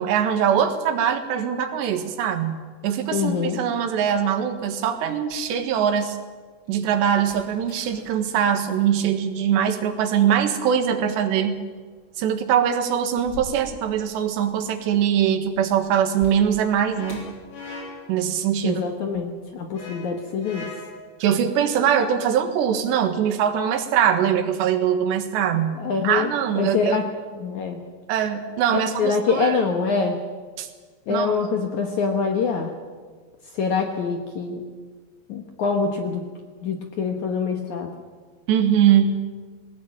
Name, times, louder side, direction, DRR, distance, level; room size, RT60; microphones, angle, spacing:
voice 1, 0.0-6.2 6.7-11.6 12.2-17.3 18.1-18.8 21.2-25.8 26.0-27.0 28.1-29.6 30.6-30.7 31.1-31.3 38.5-39.3, right 8 dB, 85° right, 7 dB, 3.8 m, -22 dB
voice 2, 3.1-3.6 18.6-20.7 25.8-27.1 27.4-27.8 29.0-30.2 31.1-32.7 33.5-34.6 35.3-36.3 36.6-37.9, left 5 dB, 60° left, 4 dB, 2.1 m, -25 dB
sound 1, 3.3-6.0 6.5-18.3 18.5-19.3, left 2 dB, 25° left, 4.8 m, -48 dB
sound 2, 16.9-18.2 19.7-21.1, left 3 dB, 90° left, 8.2 m, -39 dB
20.0 x 19.0 x 8.8 m, 1.5 s
omnidirectional pair, 4.9 m